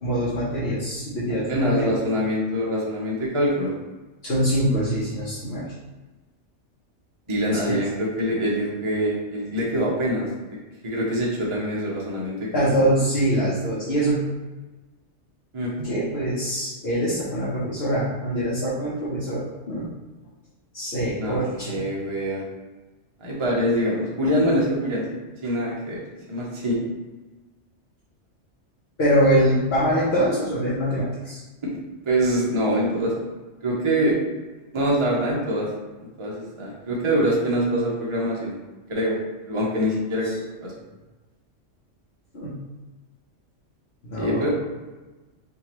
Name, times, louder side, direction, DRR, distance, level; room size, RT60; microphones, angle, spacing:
voice 1, 0.0-1.9 4.2-5.7 7.5-7.8 12.5-14.2 15.8-19.9 20.7-21.8 29.0-31.4 40.2-40.3 42.3-42.5 44.0-44.5, equal, 60° left, -9 dB, 1.1 m, -24 dB
voice 2, 1.3-3.7 7.3-10.3 10.8-12.6 15.5-15.7 21.2-22.4 23.2-26.0 26.3-26.8 32.0-33.1 33.6-34.2 34.7-35.7 36.2-38.6 38.9-39.2 39.5-40.3 40.6-40.7 44.1-44.5, equal, 30° right, -4 dB, 0.8 m, -24 dB
4.7 x 2.8 x 3.0 m, 1.2 s
omnidirectional pair, 1.2 m